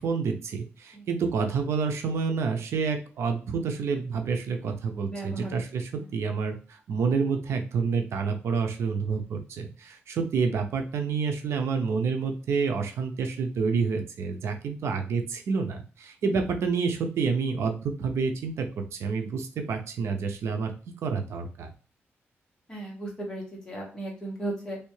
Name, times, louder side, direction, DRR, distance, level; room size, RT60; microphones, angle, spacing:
voice 1, 0.0-18.7 18.9-20.7 21.0-21.7, right 5 dB, 80° right, 5 dB, 0.6 m, -28 dB
voice 2, 5.1-5.5 6.0-6.1 22.7-24.8, right 2 dB, 15° left, -2 dB, 1.3 m, -36 dB
3.3 x 2.7 x 3.1 m, 0.37 s
wide cardioid pair, 155°, 5 cm